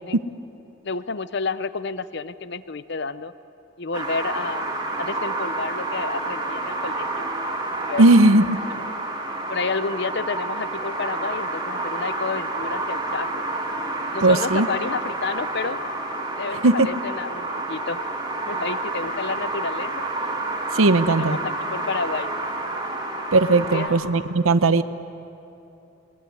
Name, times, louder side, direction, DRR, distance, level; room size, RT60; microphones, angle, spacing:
voice 1, 0.8-3.3 3.8-4.7 5.0-7.3 7.8-8.0 8.7-8.8 9.5-13.3 14.1-15.8 16.4-18.1 18.5-20.1 21.1-22.3 23.5-24.0, left 4 dB, 55° left, 14 dB, 0.7 m, -30 dB
sound 1, 3.9-23.9, right 2 dB, 20° right, 2.7 m, -29 dB
voice 2, 8.0-8.6 14.2-14.7 16.6-16.9 20.7-21.4 23.3-24.8, right 2 dB, 80° right, 12 dB, 0.8 m, -17 dB
22.5 x 21.0 x 9.6 m, 2.8 s
head